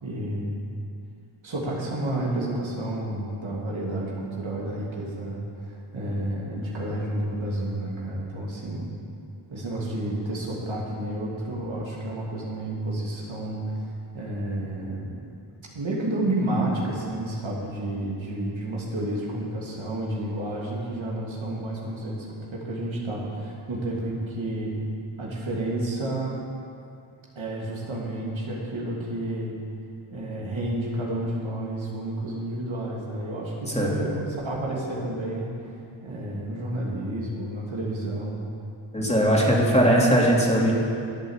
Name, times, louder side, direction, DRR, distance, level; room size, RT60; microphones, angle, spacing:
voice 1, 0.0-0.7 1.4-8.9 9.5-15.2 15.7-24.7 25.2-26.4 27.4-29.5 30.1-38.4 39.0-39.6, right 1 dB, 75° right, -4 dB, 2.9 m, -30 dB
voice 2, 38.9-40.7, equal, 15° left, -3 dB, 3.0 m, -20 dB
12.5 x 8.4 x 7.4 m, 2.5 s
cardioid pair, 45°, 47 cm